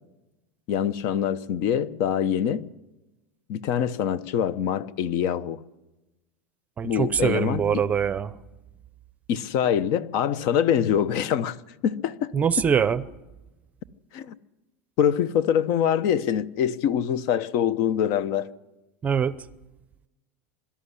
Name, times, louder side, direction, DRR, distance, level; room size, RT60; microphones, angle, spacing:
voice 1, 0.7-2.7 3.5-5.6 6.8-7.8 9.3-11.6 11.8-12.3 14.1-14.3 15.0-18.5, left 9 dB, 55° left, 1.0 m, -24 dB
voice 2, 6.8-8.4 12.3-13.0 19.0-19.4, right 7 dB, 20° right, 0.7 m, -23 dB
24.0 x 13.0 x 10.0 m
supercardioid pair, 145°, 7 cm